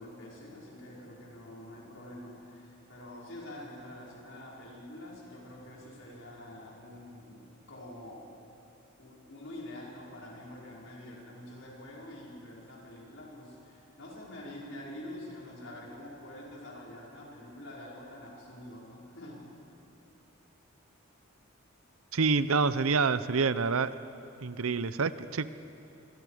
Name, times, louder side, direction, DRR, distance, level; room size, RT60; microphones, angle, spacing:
voice 1, 0.0-8.3 9.0-19.5, left 1 dB, 65° left, -4 dB, 5.5 m, -46 dB
voice 2, 22.1-23.9 24.4-25.5, right 4 dB, 85° right, 14 dB, 0.7 m, -27 dB
27.0 x 23.0 x 5.1 m, 2.7 s
head